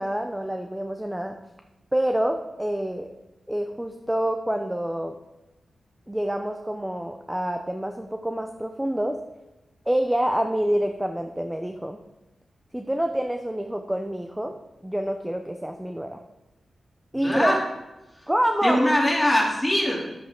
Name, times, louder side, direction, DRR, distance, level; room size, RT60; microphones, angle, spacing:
voice 1, 0.0-1.3 1.9-3.1 3.5-5.2 6.1-9.2 9.9-12.0 12.7-14.5 14.8-16.2 17.1-17.5 18.3-18.8, right 1 dB, 10° right, 4 dB, 0.6 m, -27 dB
voice 2, 17.2-17.6 18.1-18.3 18.6-20.0, left 1 dB, 5° left, -3 dB, 2.9 m, -22 dB
11.0 x 7.6 x 3.8 m, 1.0 s
wide cardioid pair, 105°, 0 cm